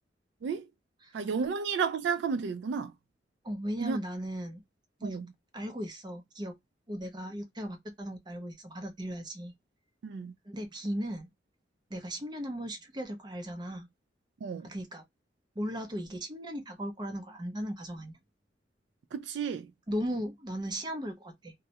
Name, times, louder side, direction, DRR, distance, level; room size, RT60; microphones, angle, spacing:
voice 1, 1.1-2.9 3.8-4.0 5.0-5.3 10.0-10.3 14.4-14.7 19.1-19.7, right 6 dB, 70° right, 0.3 m, -32 dB
voice 2, 3.4-4.6 5.0-5.2 5.5-6.5 6.9-9.5 10.5-11.3 11.9-13.9 14.6-15.0 15.6-18.2 19.9-21.5, equal, 25° right, 0.6 m, -37 dB
2.3 x 2.0 x 2.7 m
head